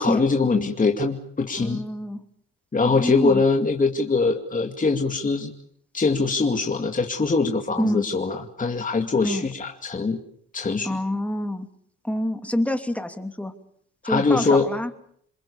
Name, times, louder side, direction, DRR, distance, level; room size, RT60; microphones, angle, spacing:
voice 1, 0.0-1.8 2.7-5.5 5.9-10.2 10.5-11.0 14.0-14.7, left 4 dB, 25° left, 4 dB, 2.4 m, -22 dB
voice 2, 1.6-2.2 2.8-3.4 7.8-8.1 9.2-9.5 10.8-11.7 12.0-13.5 14.0-14.9, left 1 dB, 5° left, 6 dB, 2.9 m, -26 dB
27.0 x 22.5 x 7.1 m, 0.66 s
cardioid pair, 90°, 30 cm